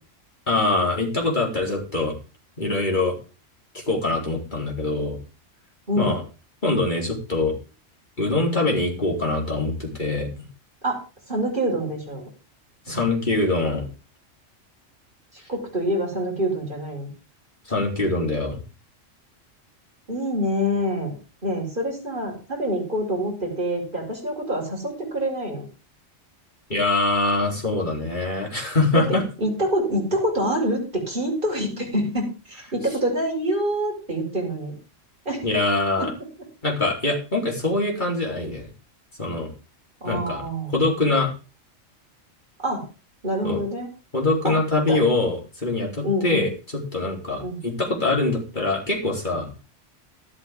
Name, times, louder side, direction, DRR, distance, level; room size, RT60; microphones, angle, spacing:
voice 1, 0.5-2.2 2.6-3.1 3.7-5.2 6.0-6.2 6.6-7.5 8.2-10.3 12.9-13.9 17.7-18.6 26.7-29.2 35.4-36.1 36.6-38.7 39.2-39.5 40.0-40.4 40.7-41.3 43.4-43.6 44.1-49.5, left 2 dB, 35° left, 0 dB, 4.0 m, -23 dB
voice 2, 10.8-12.3 12.9-13.0 15.5-17.1 20.1-21.2 21.4-25.7 29.0-29.1 29.4-34.8 35.3-35.5 36.0-36.1 40.0-40.7 42.6-42.8 43.2-43.9 44.4-44.6 44.9-45.0 46.0-46.5 47.4-47.6, equal, 40° right, -1 dB, 5.7 m, -26 dB
13.0 x 12.0 x 3.7 m, 0.33 s
omnidirectional pair, 1.3 m